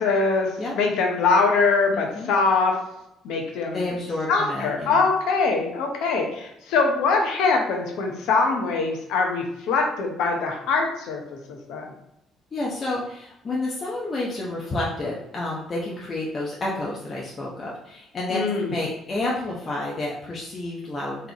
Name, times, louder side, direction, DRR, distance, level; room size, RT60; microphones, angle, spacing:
voice 1, 0.0-0.5 0.7-2.8 3.2-3.9 4.3-11.2 11.5-11.9 18.3-18.7, left 4 dB, 75° left, 2 dB, 0.9 m, -23 dB
voice 2, 1.9-2.3 3.7-5.0 12.5-21.2, left 2 dB, 40° left, -4 dB, 0.9 m, -30 dB
3.9 x 3.3 x 2.9 m, 0.87 s
supercardioid pair, 60°, 0 cm